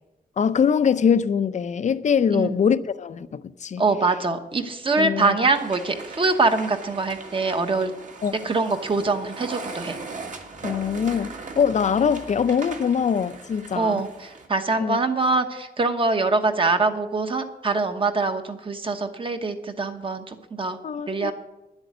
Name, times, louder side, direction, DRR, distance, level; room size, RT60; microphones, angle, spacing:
voice 1, 0.4-3.8 5.0-5.4 8.2-8.3 10.6-14.0 14.8-15.0 20.8-21.3, left 7 dB, 45° left, 0.5 m, -23 dB
voice 2, 3.8-7.9 8.4-10.0 13.7-20.8 21.1-21.3, right 3 dB, 30° right, 1.1 m, -24 dB
sound 1, 5.5-14.5, right 3 dB, 50° right, 1.7 m, -39 dB
10.5 x 7.9 x 9.2 m
wide cardioid pair, 170°, 16 cm